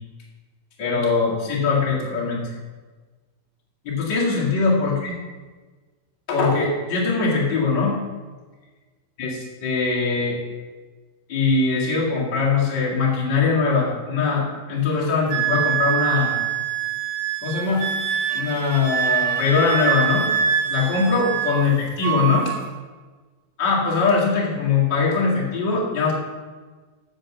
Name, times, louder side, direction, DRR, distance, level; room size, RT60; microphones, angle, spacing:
voice 1, 0.8-2.4 3.8-5.1 6.3-8.0 9.2-10.4 11.3-16.4 17.4-17.8 18.3-20.3 20.7-22.5 23.6-26.1, left 4 dB, 45° left, -4 dB, 1.4 m, -21 dB
Wind instrument woodwind instrument, 15.3-21.7 22.0-22.6, right 8 dB, 85° right, 2.9 m, -24 dB
7.8 x 7.4 x 6.1 m, 1.4 s
omnidirectional pair, 5.3 m